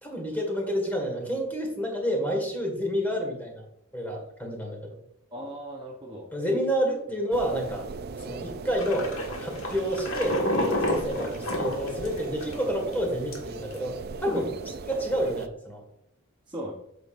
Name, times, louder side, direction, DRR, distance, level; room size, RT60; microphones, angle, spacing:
voice 1, 0.0-3.6 3.9-4.9 6.3-7.9 8.2-9.1 9.4-14.4 14.8-15.8, equal, 10° left, 1 dB, 1.7 m, -29 dB
voice 2, 5.3-6.3 8.4-8.5 14.3-14.8 16.5-16.7, right 1 dB, 20° right, -1 dB, 0.8 m, -38 dB
sound 1, 7.3-15.5, right 4 dB, 45° right, 0.4 m, -38 dB
sound 2, 8.8-12.6 12.9-13.0 13.3-13.8, left 1 dB, 60° left, 1.7 m, -29 dB
8.5 x 6.6 x 2.5 m, 0.78 s
head